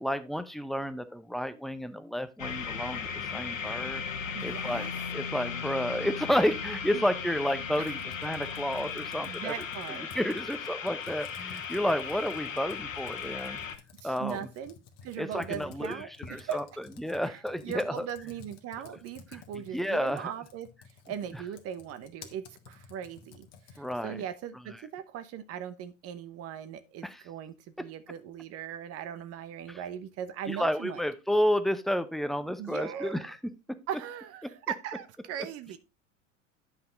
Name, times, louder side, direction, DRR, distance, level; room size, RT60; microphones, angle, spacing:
voice 1, 0.0-4.0 4.4-9.5 9.9-13.6 14.0-14.5 15.2-16.6 17.0-18.1 19.3-19.4 19.7-20.3 23.8-24.2 27.0-27.2 29.7-29.8 30.5-33.4, equal, ahead, 10 dB, 0.7 m, -31 dB
sound 1, 2.4-13.8, left 6 dB, 80° left, 1.2 m, -37 dB
voice 2, 4.3-4.9 6.9-7.0 7.8-7.9 9.2-10.1 14.0-14.8 15.0-16.6 17.3-20.7 21.1-31.0 32.6-33.2 33.9-35.8, right 9 dB, 40° right, 12 dB, 0.9 m, -39 dB
Computer keyboard, 7.7-24.1, left 6 dB, 40° left, 1.5 m, -52 dB
9.7 x 5.7 x 3.8 m, 0.27 s
figure-of-eight pair, 85°, 38 cm